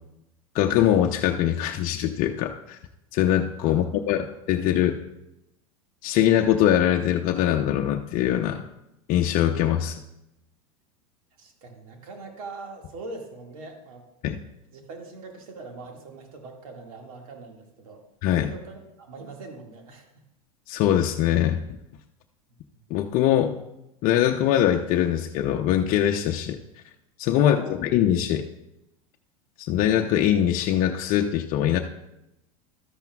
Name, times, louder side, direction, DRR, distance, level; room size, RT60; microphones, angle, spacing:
voice 1, 0.5-2.8 3.1-5.0 6.0-8.6 9.1-10.0 14.2-14.4 18.2-18.5 20.7-21.6 22.9-23.6 24.0-26.6 27.2-28.4 29.6-31.8, left 11 dB, 50° left, 2 dB, 0.7 m, -22 dB
voice 2, 3.6-4.3 4.7-4.8 11.4-14.0 14.7-20.1 27.3-27.9, right 3 dB, 75° right, 2 dB, 2.0 m, -42 dB
13.0 x 10.5 x 2.3 m, 0.88 s
hypercardioid pair, 100°, 18 cm